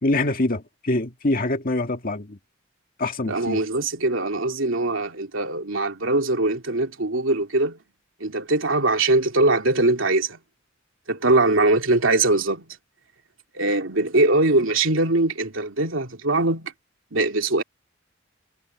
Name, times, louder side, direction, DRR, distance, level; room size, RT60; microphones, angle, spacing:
voice 1, 0.0-2.4 3.0-3.6, left 2 dB, 45° left, 1.9 m, -24 dB
voice 2, 3.3-7.8 8.2-10.4 11.1-12.6 13.5-16.7 17.1-17.6, right 2 dB, 80° right, 2.7 m, -21 dB
head